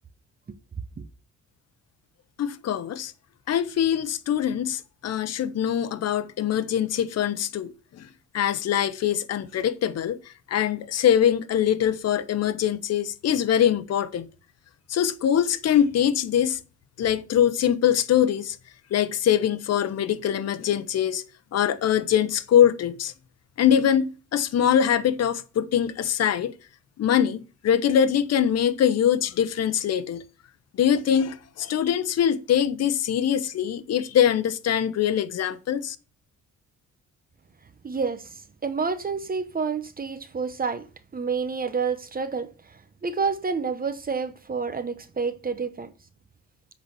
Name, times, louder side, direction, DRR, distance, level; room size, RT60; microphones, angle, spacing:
voice 1, 2.4-3.1 3.5-8.1 8.3-10.2 10.5-14.2 14.9-16.6 17.0-18.6 18.9-21.2 21.5-23.1 23.6-26.5 27.0-30.2 30.8-36.0, left 9 dB, 55° left, 0.9 m, -23 dB
voice 2, 37.8-40.9 41.1-45.9, right 5 dB, 30° right, 0.9 m, -29 dB
8.3 x 4.2 x 6.3 m
cardioid pair, 90°, 30 cm